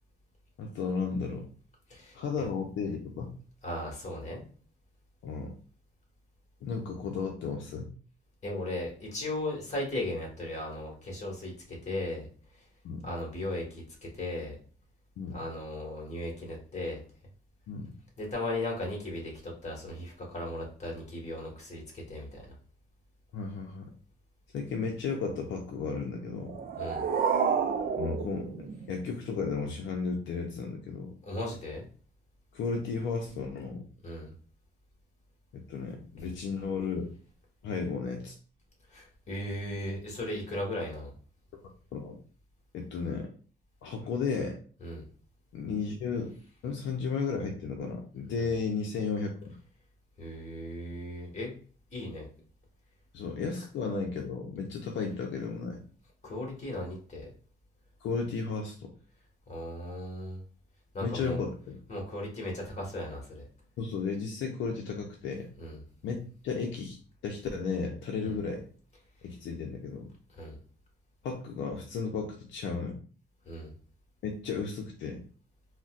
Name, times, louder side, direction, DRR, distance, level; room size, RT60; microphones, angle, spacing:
voice 1, 0.6-1.4 2.1-3.3 5.2-5.5 6.6-7.9 12.8-13.0 15.2-15.4 17.7-17.9 23.3-23.9 24.5-26.6 27.9-31.1 32.5-33.9 35.5-37.1 37.6-38.3 41.6-42.2 42.7-43.3 43.8-44.6 45.5-46.3 46.6-49.5 53.1-55.8 58.0-58.9 61.0-61.8 63.8-65.5 66.0-66.2 66.4-67.0 67.2-68.6 69.2-70.1 71.2-73.0 74.2-75.2, left 5 dB, 75° left, 2 dB, 0.6 m, -34 dB
voice 2, 1.9-2.5 3.6-4.4 8.4-12.3 13.0-14.5 15.3-17.0 18.2-22.4 26.8-27.0 31.3-31.8 34.0-34.3 38.9-41.1 44.8-45.0 48.4-48.5 50.2-51.5 51.9-52.2 56.2-57.3 59.5-60.4 60.9-61.4 61.9-63.4 65.6-65.8 68.2-68.4 70.3-70.5 73.4-73.7, left 1 dB, 35° left, -1 dB, 1.5 m, -37 dB
sound 1, 26.4-29.4, right 6 dB, 50° right, 0.4 m, -30 dB
3.9 x 2.2 x 2.4 m, 0.42 s
cardioid pair, 90°, 20 cm